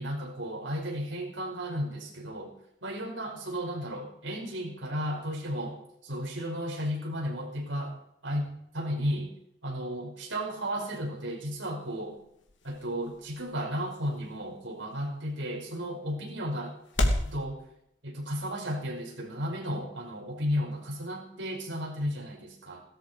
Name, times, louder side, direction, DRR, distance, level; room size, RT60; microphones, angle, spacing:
voice 1, 0.0-2.5 2.8-8.0 8.2-8.5 8.7-9.3 9.6-12.2 12.6-16.8 17.3-17.6 18.0-22.8, equal, 80° right, 0 dB, 5.4 m, -34 dB
sound 1, 11.1-17.3, left 1 dB, 75° left, 2.9 m, -36 dB
17.5 x 12.5 x 5.1 m, 0.74 s
head